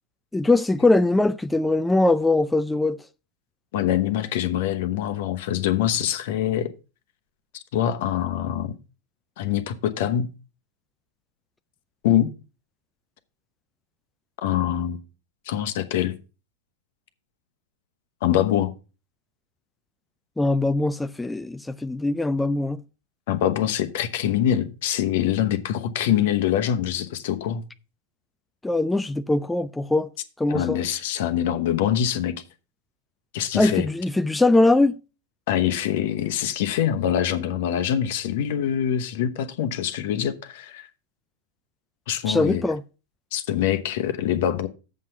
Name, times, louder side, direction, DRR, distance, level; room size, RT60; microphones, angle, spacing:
voice 1, 0.3-3.0 20.4-22.8 28.6-30.1 30.4-30.8 33.5-35.0 42.3-42.8, left 2 dB, 5° left, 0.3 m, -21 dB
voice 2, 3.7-6.7 7.5-8.8 9.4-10.3 12.0-12.3 14.4-15.0 15.5-16.2 18.2-18.7 23.3-27.6 30.5-32.4 33.3-33.9 35.5-40.9 42.1-42.6 43.3-44.7, left 10 dB, 60° left, 0.9 m, -24 dB
7.4 x 5.9 x 5.6 m
hypercardioid pair, 100°, 0 cm